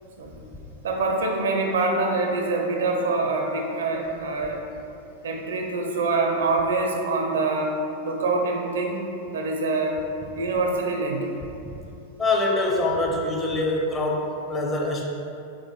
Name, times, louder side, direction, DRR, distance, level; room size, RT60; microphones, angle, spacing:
voice 1, 0.8-4.6 5.2-7.8 8.0-9.0 9.3-10.0 10.3-11.4, right 3 dB, 65° right, 2 dB, 0.5 m, -25 dB
voice 2, 12.2-15.1, left 2 dB, 20° left, -1 dB, 0.6 m, -24 dB
5.1 x 3.4 x 2.3 m, 2.7 s
figure-of-eight pair, 90°, 0 cm